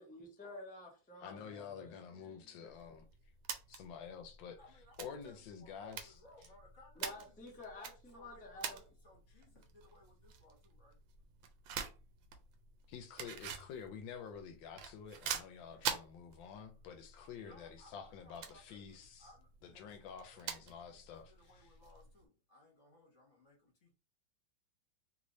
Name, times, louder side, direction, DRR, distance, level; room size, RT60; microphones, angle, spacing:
voice 1, 0.0-2.7 7.0-8.8, left 2 dB, 10° left, 0.4 m, -51 dB
voice 2, 1.2-3.0 3.7-4.6 5.0-6.1 12.9-19.3 19.6-21.7, left 7 dB, 80° left, 1.3 m, -49 dB
sound 1, 2.7-22.2, right 8 dB, 85° right, 1.3 m, -47 dB
voice 3, 4.6-11.0 15.7-15.9 17.4-23.9, left 1 dB, 40° left, 1.8 m, -63 dB
3.3 x 3.1 x 2.6 m
omnidirectional pair, 2.1 m